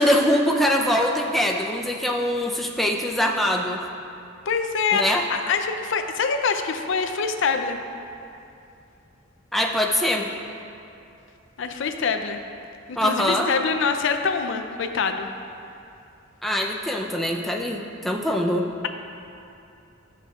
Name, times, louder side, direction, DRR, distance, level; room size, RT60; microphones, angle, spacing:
voice 1, 0.0-3.8 4.9-5.2 9.5-10.3 13.0-13.5 16.4-18.7, left 1 dB, ahead, -1 dB, 0.5 m, -23 dB
voice 2, 4.5-5.0 5.3-7.8 11.6-12.4 12.9-15.3, left 5 dB, 65° left, 6 dB, 0.5 m, -25 dB
11.0 x 7.4 x 2.4 m, 2.6 s
head